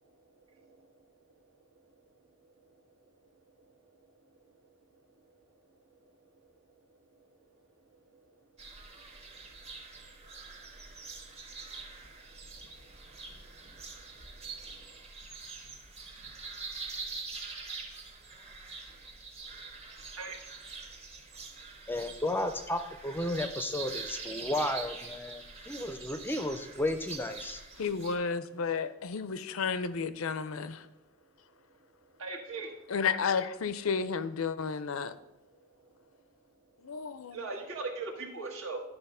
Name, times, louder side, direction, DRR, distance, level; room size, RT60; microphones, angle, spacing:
voice 1, 0.6-0.9 9.6-9.7 11.0-11.1 12.6-13.5 14.6-15.0 20.2-20.4 30.8-30.9 32.2-32.7 37.3-38.8, right 3 dB, 70° right, 1.6 m, -41 dB
sound 1, 8.6-28.2, right 4 dB, 30° right, 1.1 m, -44 dB
voice 2, 21.9-27.6, left 1 dB, 10° left, 0.5 m, -33 dB
voice 3, 27.8-30.8 32.9-35.2 36.8-37.4, left 5 dB, 75° left, 0.5 m, -32 dB
11.5 x 4.0 x 5.5 m
head